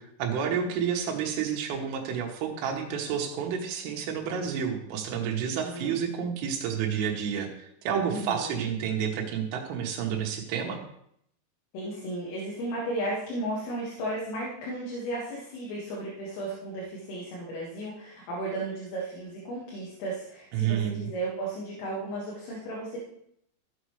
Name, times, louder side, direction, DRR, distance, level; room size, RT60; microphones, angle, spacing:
voice 1, 0.0-10.8 20.5-21.1, right 7 dB, 90° right, 1 dB, 3.9 m, -30 dB
voice 2, 5.6-6.0 8.1-8.7 11.7-23.0, right 1 dB, 90° left, -5 dB, 4.5 m, -34 dB
15.0 x 7.8 x 3.2 m, 0.72 s
omnidirectional pair, 5.6 m